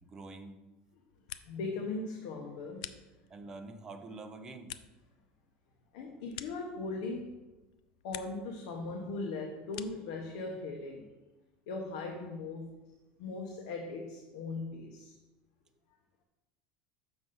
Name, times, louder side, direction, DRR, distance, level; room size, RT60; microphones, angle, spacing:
voice 1, 0.0-0.6 3.3-4.8, right 3 dB, 15° right, 6 dB, 0.5 m, -46 dB
sound 1, 1.0-1.8 2.1-3.5 4.0-7.2 7.6-8.5 8.8-10.2, left 12 dB, 90° left, 0.4 m, -49 dB
voice 2, 1.4-2.9 5.9-7.4 8.0-11.1 11.7-12.7 13.2-15.1, left 3 dB, 60° left, 1 dB, 0.9 m, -39 dB
6.3 x 6.1 x 3.9 m, 1.1 s
cardioid pair, 180°, 4 cm